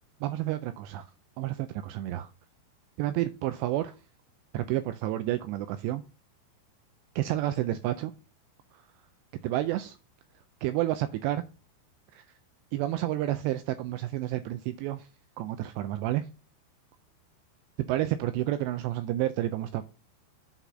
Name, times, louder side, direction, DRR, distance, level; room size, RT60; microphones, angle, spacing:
voice 1, 0.2-1.1 1.4-2.3 3.0-3.9 4.5-6.0 7.2-8.1 9.4-10.0 10.6-11.4 12.1-12.2 12.7-15.1 15.4-16.3 17.9-19.8, right 14 dB, 85° right, 2.5 m, -30 dB
8.1 x 4.3 x 4.9 m
omnidirectional pair, 5.4 m